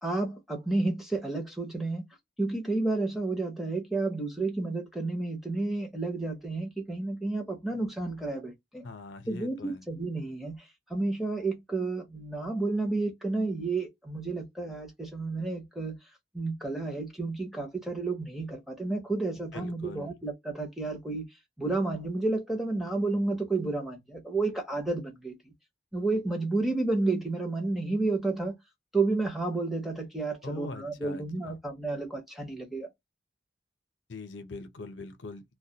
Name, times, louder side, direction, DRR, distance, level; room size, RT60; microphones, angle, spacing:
voice 1, 0.0-2.0 2.4-8.8 9.3-10.6 10.9-16.0 16.3-21.3 21.6-25.3 25.9-28.5 28.9-32.9, right 3 dB, ahead, 0.6 m, -31 dB
voice 2, 8.8-9.8 19.5-20.1 30.4-31.6 34.1-35.4, left 3 dB, 80° left, 0.6 m, -42 dB
2.2 x 2.1 x 2.7 m
head